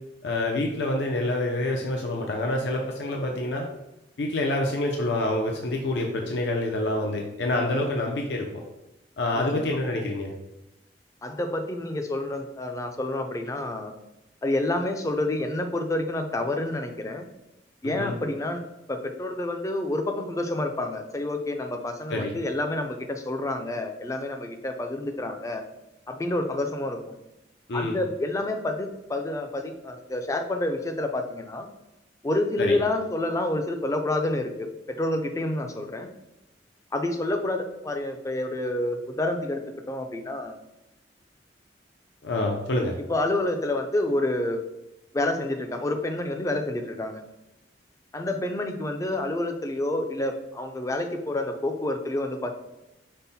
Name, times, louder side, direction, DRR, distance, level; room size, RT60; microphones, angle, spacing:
voice 1, 0.2-3.7 4.2-8.5 9.2-10.3 17.8-18.1 22.1-22.3 27.7-28.0 32.6-32.8 42.2-43.0, left 1 dB, 70° left, 1 dB, 0.5 m, -27 dB
voice 2, 9.3-9.8 11.2-13.9 14.4-17.3 17.8-18.6 18.9-25.6 26.1-27.2 27.7-31.7 32.2-36.1 36.9-39.6 39.9-40.6 43.1-44.6 45.1-47.2 48.1-52.5, left 1 dB, 20° left, 5 dB, 0.4 m, -28 dB
5.4 x 2.1 x 4.0 m, 0.92 s
head